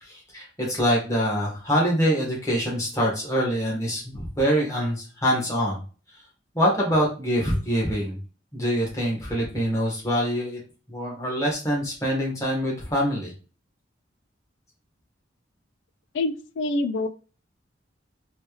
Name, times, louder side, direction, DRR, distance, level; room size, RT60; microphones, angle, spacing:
voice 1, 0.0-5.8 6.5-8.2 8.5-10.6 10.9-13.3, equal, 15° left, -3 dB, 1.4 m, -25 dB
voice 2, 16.1-17.1, left 2 dB, 80° left, 10 dB, 0.3 m, -26 dB
3.2 x 2.9 x 3.0 m, 0.35 s
head